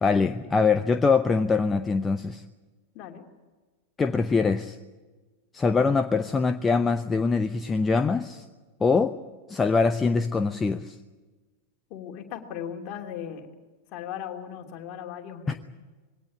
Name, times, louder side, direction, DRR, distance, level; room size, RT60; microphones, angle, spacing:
voice 1, 0.0-2.4 4.0-4.8 5.5-8.4 8.8-9.2 9.5-11.0 15.5-15.6, left 4 dB, 15° left, 10 dB, 0.7 m, -23 dB
voice 2, 11.9-13.5 13.9-15.6, left 9 dB, 40° left, 3 dB, 2.9 m, -37 dB
22.0 x 17.5 x 9.9 m, 1.3 s
figure-of-eight pair, 90°, 0 cm